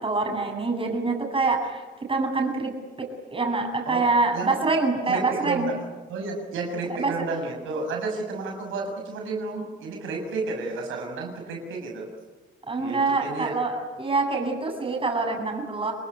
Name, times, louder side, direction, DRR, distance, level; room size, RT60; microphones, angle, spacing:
voice 1, 0.0-1.8 2.1-2.7 3.0-5.7 6.9-7.1 12.7-15.9, right 3 dB, 25° right, 2 dB, 7.8 m, -25 dB
voice 2, 5.1-5.8 6.1-12.1 12.8-13.5, right 3 dB, 85° right, 2 dB, 6.8 m, -31 dB
28.5 x 20.5 x 9.8 m, 1.3 s
cardioid pair, 90°, 20 cm